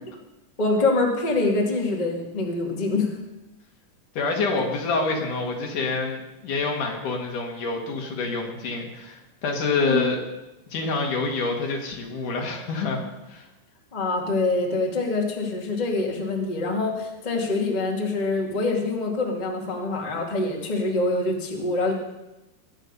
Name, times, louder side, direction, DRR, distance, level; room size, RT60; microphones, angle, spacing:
voice 1, 0.6-3.1 9.8-10.1 13.9-21.9, left 2 dB, 15° left, 0 dB, 1.8 m, -25 dB
voice 2, 4.2-10.2 10.7-13.0 13.3-13.5, left 3 dB, 65° left, 1 dB, 3.5 m, -27 dB
21.5 x 9.1 x 5.4 m, 0.99 s
omnidirectional pair, 3.9 m